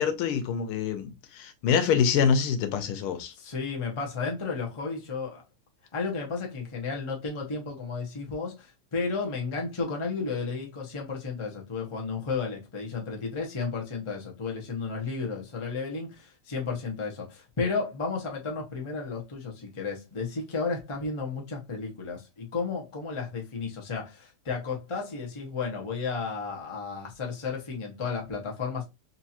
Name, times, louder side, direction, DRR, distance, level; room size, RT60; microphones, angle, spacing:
voice 1, 0.0-3.3, left 7 dB, 90° left, 1.6 m, -25 dB
voice 2, 3.4-5.4 5.9-28.8, left 4 dB, 25° left, 0.6 m, -33 dB
4.3 x 2.7 x 2.8 m
omnidirectional pair, 2.3 m